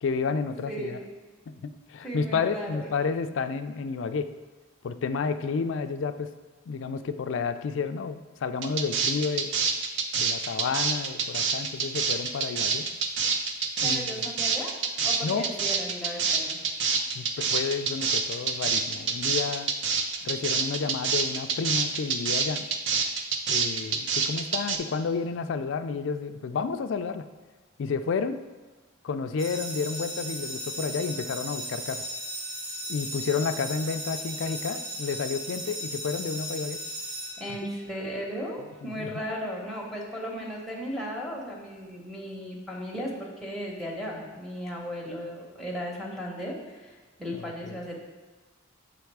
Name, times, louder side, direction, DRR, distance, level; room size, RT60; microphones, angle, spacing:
voice 1, 0.0-1.0 1.5-4.3 4.8-6.3 6.7-9.5 10.2-12.9 13.8-14.2 15.2-15.5 17.1-19.7 20.2-22.7 23.5-27.3 27.8-28.4 29.0-32.1 32.9-36.8 38.8-39.2 47.4-47.8, left 5 dB, 65° left, 10 dB, 0.3 m, -31 dB
voice 2, 0.7-1.1 2.0-2.9 13.8-14.7 15.0-16.6 37.4-48.0, equal, ahead, -4 dB, 1.0 m, -36 dB
sound 1, 8.6-24.8, right 5 dB, 60° right, 0.5 m, -26 dB
sound 2, 29.4-38.0, equal, 85° right, 1.3 m, -36 dB
7.1 x 3.5 x 4.6 m, 1.4 s
head